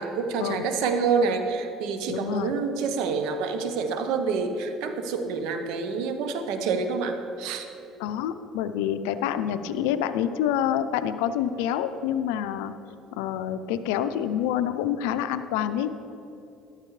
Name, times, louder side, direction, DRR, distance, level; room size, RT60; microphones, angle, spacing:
voice 1, 0.0-7.7, right 5 dB, 75° right, 7 dB, 1.0 m, -27 dB
voice 2, 2.1-2.5 8.0-12.7 13.2-15.9, left 10 dB, 85° left, 11 dB, 0.5 m, -27 dB
13.0 x 12.0 x 3.3 m, 2.8 s
supercardioid pair, 95°, 0 cm